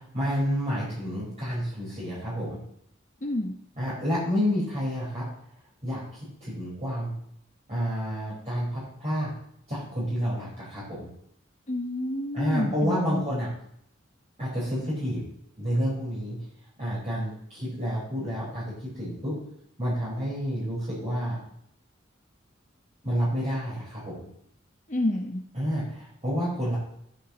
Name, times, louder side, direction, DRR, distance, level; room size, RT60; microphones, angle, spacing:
voice 1, 0.0-2.6 3.8-5.3 5.8-6.0 6.4-7.1 7.7-9.3 9.7-11.1 12.3-13.5 14.4-15.2 15.6-16.4 16.8-19.3 19.8-21.4 23.0-24.3 25.5-26.8, equal, 35° right, -9 dB, 4.8 m, -29 dB
voice 2, 3.2-3.6 11.7-13.2 24.9-25.4, left 1 dB, 40° left, 1 dB, 0.9 m, -29 dB
13.0 x 11.5 x 3.1 m, 0.72 s
head